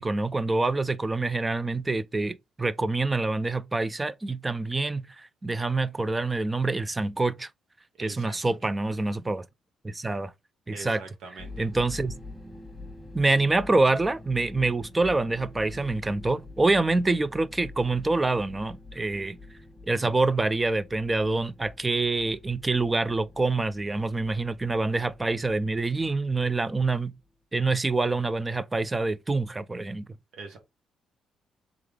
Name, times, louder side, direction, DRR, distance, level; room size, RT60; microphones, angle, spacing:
voice 1, 0.0-7.5 8.0-9.5 9.8-10.3 10.7-11.0 11.6-12.1 13.1-19.4 19.9-27.1 27.5-30.1, right 3 dB, 20° right, 0.4 m, -26 dB
voice 2, 7.9-8.6 10.7-11.7 24.0-24.5 30.3-30.6, right 4 dB, 75° right, 1.7 m, -44 dB
sound 1, 11.4-27.3, left 2 dB, ahead, 1.3 m, -46 dB
3.5 x 3.3 x 3.6 m
cardioid pair, 90°, 0 cm